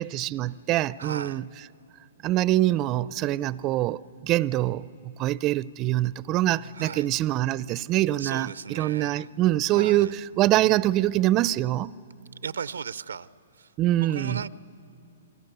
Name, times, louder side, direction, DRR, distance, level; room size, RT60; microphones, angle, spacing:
voice 1, 0.0-1.4 2.2-11.9 13.8-14.4, right 15 dB, 30° right, 0.4 m, -24 dB
voice 2, 1.0-1.4 6.7-7.1 8.2-9.3 9.7-10.1 12.4-13.3 13.6-13.7 14.0-14.5, right 6 dB, 90° right, 0.5 m, -36 dB
28.5 x 23.0 x 6.8 m
hypercardioid pair, 140°, 0 cm